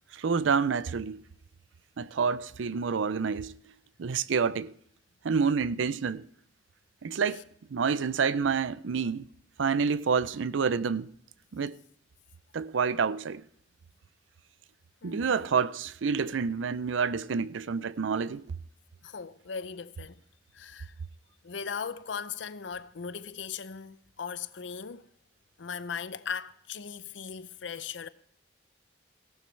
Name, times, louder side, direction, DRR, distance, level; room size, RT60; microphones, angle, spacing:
voice 1, 0.1-1.2 2.0-3.5 4.0-4.7 5.2-6.2 7.0-7.4 7.7-9.3 9.6-11.1 11.5-11.7 12.5-13.4 15.0-18.4, right 5 dB, 85° right, 0.5 m, -28 dB
voice 2, 15.0-15.3 19.0-20.2 20.5-20.9 21.4-25.1 25.6-28.1, left 6 dB, 75° left, 0.6 m, -38 dB
17.5 x 12.0 x 3.3 m
head